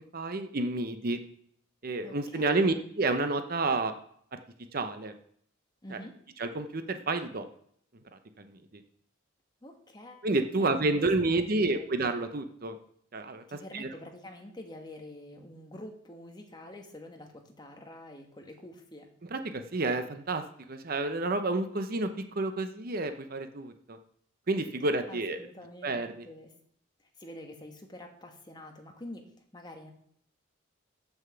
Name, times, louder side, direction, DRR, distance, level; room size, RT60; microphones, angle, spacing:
voice 1, 0.1-1.2 1.8-3.9 4.7-5.1 5.9-6.0 6.4-7.5 8.1-8.8 10.2-12.8 13.1-13.9 19.3-24.0 24.5-25.4 25.8-26.3, right 2 dB, 45° right, 8 dB, 0.7 m, -30 dB
voice 2, 2.0-2.8 5.8-6.2 9.6-10.3 10.6-11.9 13.5-19.1 25.1-26.5 27.0-29.3 29.5-29.9, left 1 dB, 20° left, 3 dB, 1.2 m, -47 dB
7.2 x 6.6 x 7.0 m, 0.65 s
head